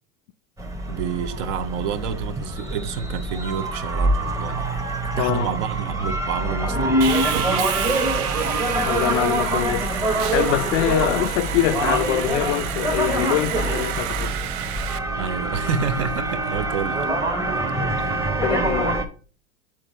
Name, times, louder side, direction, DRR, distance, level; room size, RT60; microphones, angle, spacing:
sound 1, 0.6-19.1, right 2 dB, 10° right, 0.7 m, -25 dB
voice 1, 0.9-4.7 5.2-7.6 15.2-17.1 17.5-17.7 18.0-18.2, right 7 dB, 65° right, 0.9 m, -29 dB
voice 2, 5.2-5.5 8.8-9.9 10.3-14.3 17.7-18.0 18.4-19.0, left 15 dB, 65° left, 0.5 m, -24 dB
Sawing, 7.0-15.0, right 11 dB, 45° right, 0.5 m, -30 dB
5.9 x 4.6 x 5.0 m
hypercardioid pair, 120°, 40 cm